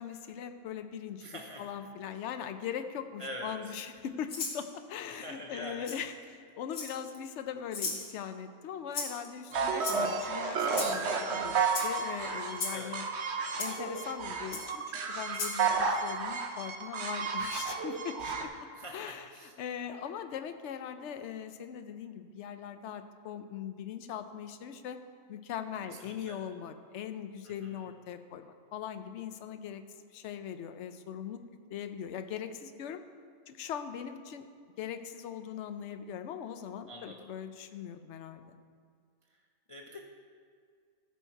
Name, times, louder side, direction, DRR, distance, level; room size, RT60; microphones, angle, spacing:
voice 1, 0.0-13.0 13.6-18.5 18.9-25.0 25.3-31.4 31.7-33.0 33.5-34.4 34.8-38.6, left 8 dB, 60° left, 9 dB, 0.8 m, -40 dB
voice 2, 1.2-1.7 3.2-3.6 5.1-5.9 9.5-10.0 12.7-13.0 18.7-19.5 25.8-26.4 27.4-27.9 36.9-37.3 39.3-39.4 39.7-40.0, equal, 40° left, 0 dB, 0.5 m, -45 dB
Rattle (instrument), 4.3-4.6 5.8-6.0 6.7-7.2 7.7-8.0 8.9-9.3 9.8-10.2 10.7-11.0 11.7-11.9 12.6-12.8 13.6-13.7 14.5-14.6 15.3-15.6, left 4 dB, 75° left, 1.9 m, -35 dB
sound 1, 9.5-18.4, right 5 dB, 55° right, 1.0 m, -32 dB
14.0 x 6.3 x 4.6 m, 2.1 s
omnidirectional pair, 1.6 m